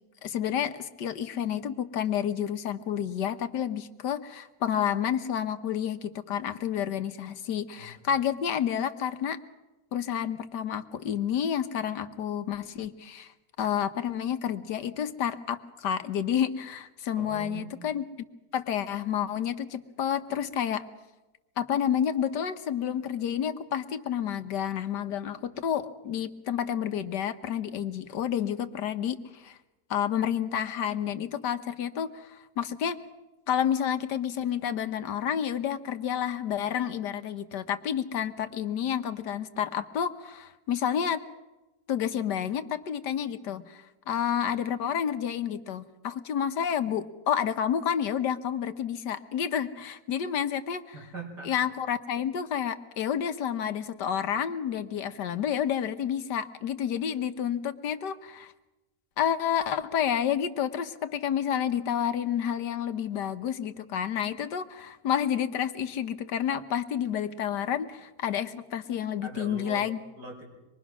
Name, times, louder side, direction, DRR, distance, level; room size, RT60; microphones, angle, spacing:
voice 1, 0.2-9.4 9.9-13.3 13.6-18.0 18.5-20.8 21.6-29.6 29.9-33.0 33.5-41.2 41.9-50.8 51.5-58.5 59.2-70.0, left 9 dB, 85° left, 10 dB, 1.7 m, -30 dB
voice 2, 17.2-17.8 50.9-51.5 69.2-69.8 70.1-70.4, right 3 dB, 80° right, 0 dB, 6.0 m, -41 dB
25.5 x 22.0 x 6.2 m, 1.1 s
omnidirectional pair, 1.8 m